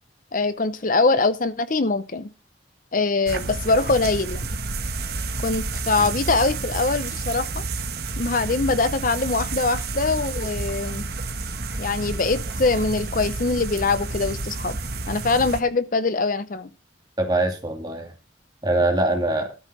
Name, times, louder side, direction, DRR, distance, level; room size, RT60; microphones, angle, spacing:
voice 1, 0.3-2.3 2.9-4.5 5.4-7.6 8.2-11.0 11.8-14.8 15.1-16.7, left 3 dB, 45° left, 12 dB, 0.7 m, -23 dB
sound 1, 3.3-15.6, right 3 dB, 55° right, 1.4 m, -30 dB
voice 2, 17.2-18.1 18.6-19.5, right 2 dB, 20° right, 3 dB, 2.4 m, -23 dB
13.5 x 5.6 x 6.1 m, 0.30 s
head